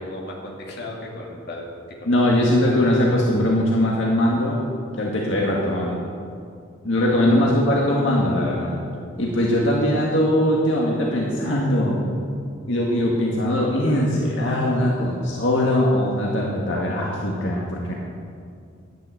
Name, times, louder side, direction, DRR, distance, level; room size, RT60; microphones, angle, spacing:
voice 1, 0.0-2.4 7.2-7.5, left 1 dB, 55° left, -2 dB, 2.5 m, -36 dB
voice 2, 2.1-4.6 5.0-6.0 6.8-8.7 9.2-12.0 12.7-17.9, left 1 dB, 70° left, -3 dB, 2.0 m, -21 dB
11.0 x 10.5 x 7.9 m, 2.3 s
head